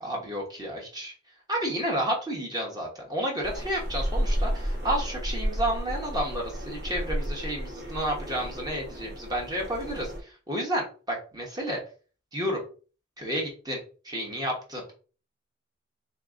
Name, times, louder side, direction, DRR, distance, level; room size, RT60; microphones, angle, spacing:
voice 1, 0.0-1.1 1.5-11.8 12.3-12.6 13.2-13.8 14.0-14.9, right 1 dB, 20° right, -1 dB, 1.0 m, -31 dB
sound 1, 3.4-10.2, equal, 55° right, 1.1 m, -32 dB
3.5 x 2.8 x 3.7 m, 0.37 s
head